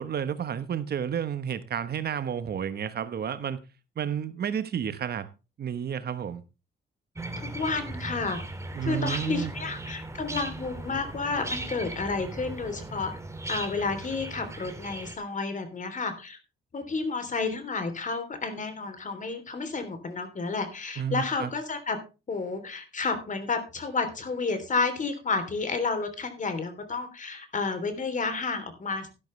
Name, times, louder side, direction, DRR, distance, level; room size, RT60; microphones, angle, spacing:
voice 1, 0.0-3.6 4.0-5.3 5.6-6.4 8.7-9.5 21.0-21.5, right 8 dB, 55° right, 1.2 m, -31 dB
sound 1, 7.2-15.1, right 2 dB, 15° right, 2.4 m, -38 dB
voice 2, 7.4-8.4 8.8-13.1 13.5-16.4 16.7-22.0 22.3-29.1, left 4 dB, 40° left, 3.3 m, -31 dB
12.0 x 11.5 x 3.2 m
cardioid pair, 90°, 20 cm